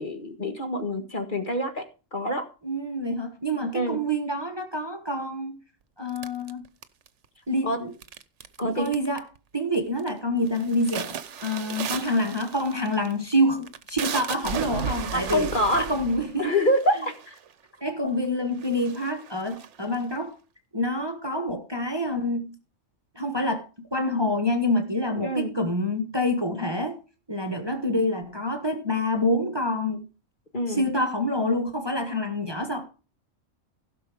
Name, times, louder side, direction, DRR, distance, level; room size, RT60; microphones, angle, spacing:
voice 1, 0.0-2.5 3.7-4.0 7.6-7.8 8.6-8.9 15.1-15.9 16.4-17.4 25.2-25.5 30.5-30.8, equal, 40° left, 1.8 m, -26 dB
voice 2, 2.6-5.6 6.0-6.6 7.5-7.9 8.6-9.3 9.5-15.5 15.9-16.5 17.8-20.4 20.7-22.5 23.1-27.0 27.3-30.0 30.7-32.9, left 1 dB, 20° right, 1.4 m, -27 dB
sound 1, 6.2-7.3 8.0-8.6 8.9-9.4 9.7-10.1 10.5-17.5 18.2-18.3 18.6-20.2, right 7 dB, 65° right, 1.1 m, -35 dB
16.0 x 6.2 x 5.0 m
omnidirectional pair, 1.3 m